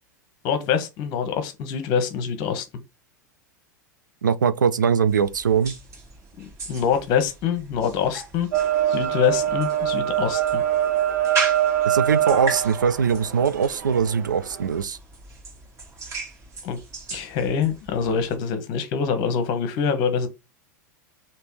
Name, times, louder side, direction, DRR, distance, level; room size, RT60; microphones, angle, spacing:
voice 1, 0.4-2.6 6.4-8.5 8.9-10.6 16.6-16.8 17.1-20.3, left 7 dB, 50° left, 1.0 m, -25 dB
voice 2, 4.2-5.8 11.9-15.0, right 6 dB, 85° right, 0.4 m, -21 dB
sound 1, 5.1-18.4, right 4 dB, 30° right, 1.6 m, -37 dB
sound 2, 8.5-14.8, right 11 dB, 65° right, 1.1 m, -24 dB
3.4 x 2.9 x 4.5 m
hypercardioid pair, 90°, 10 cm